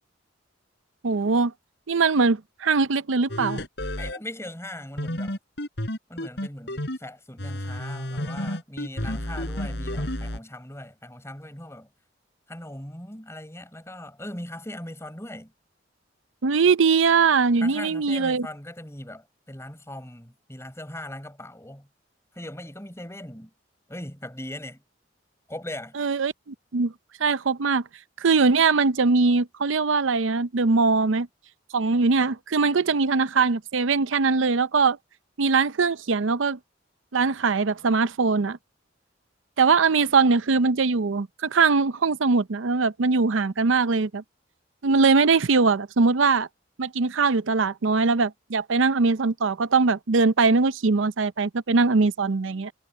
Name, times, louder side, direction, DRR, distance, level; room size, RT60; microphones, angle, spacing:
voice 1, 1.0-1.5 1.9-3.6 16.4-18.5 26.0-26.9 27.2-27.8 28.2-31.3 31.7-35.0 35.4-36.6 37.1-38.6 39.6-44.2 44.8-46.5 46.8-52.7, right 4 dB, 90° right, 0.6 m, -21 dB
sound 1, 3.3-4.2 5.0-7.0 7.4-10.4, left 1 dB, 60° left, 5.2 m, -31 dB
voice 2, 4.0-5.4 6.1-11.9 12.5-15.5 17.6-21.9 22.3-23.5 23.9-24.8 25.5-26.0, left 1 dB, 15° left, 6.7 m, -39 dB
head